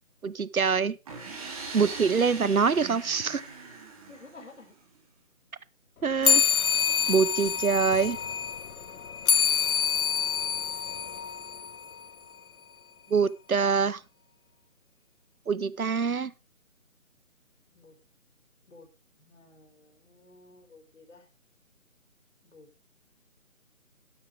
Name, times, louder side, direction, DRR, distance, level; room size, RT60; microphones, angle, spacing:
voice 1, 0.2-1.0 1.7-3.4 6.0-6.4 7.1-8.2 13.1-14.0 15.5-16.3, right 5 dB, 85° right, 20 dB, 0.9 m, -25 dB
sound 1, 1.1-4.8, right 4 dB, 25° right, 3.3 m, -41 dB
voice 2, 4.1-4.7 6.8-7.5 17.7-18.0 18.7-18.9 19.2-21.3 22.4-22.7, left 3 dB, 60° left, 3 dB, 5.6 m, -53 dB
sound 2, 6.2-12.1, left 7 dB, 85° left, 0.7 m, -27 dB
12.0 x 11.5 x 3.4 m, 0.27 s
figure-of-eight pair, 160°, 42 cm